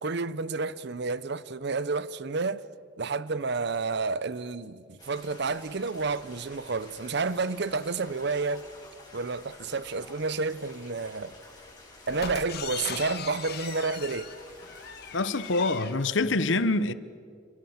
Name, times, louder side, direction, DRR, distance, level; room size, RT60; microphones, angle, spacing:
voice 1, 0.0-2.6 3.0-8.6 9.1-11.3 12.1-14.3, right 4 dB, 60° right, 0.8 m, -30 dB
sound 1, 5.0-15.8, left 2 dB, 20° left, 8.0 m, -51 dB
sound 2, 12.1-15.9, left 7 dB, 55° left, 2.0 m, -39 dB
voice 2, 15.1-16.9, left 2 dB, 80° left, 1.1 m, -25 dB
28.5 x 25.0 x 7.3 m
head